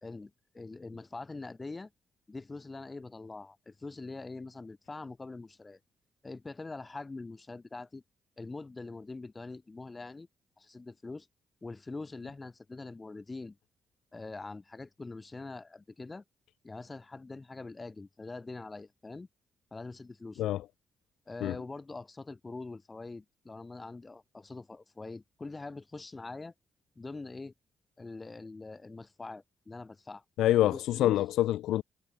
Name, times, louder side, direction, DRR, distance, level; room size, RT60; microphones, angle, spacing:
voice 1, 0.0-1.9 2.3-5.8 6.2-8.0 8.4-10.3 10.6-11.3 11.6-13.6 14.1-16.2 16.6-19.3 19.7-20.4 21.3-26.5 27.0-27.5 28.0-30.2 30.7-31.2, left 3 dB, 30° left, 2.0 m, -43 dB
voice 2, 30.4-31.8, left 14 dB, 85° left, 0.4 m, -26 dB
supercardioid pair, 60°, 0 cm